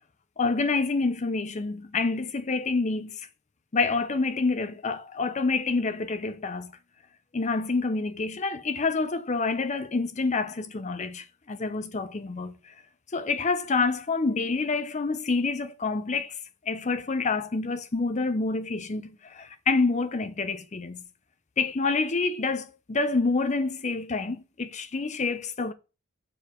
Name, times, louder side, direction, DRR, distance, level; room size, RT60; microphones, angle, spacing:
voice 1, 0.4-3.3 3.7-6.7 7.3-12.7 13.1-16.4 16.7-21.0 21.6-25.7, left 3 dB, 30° left, 0.5 m, -27 dB
6.6 x 4.6 x 3.7 m
head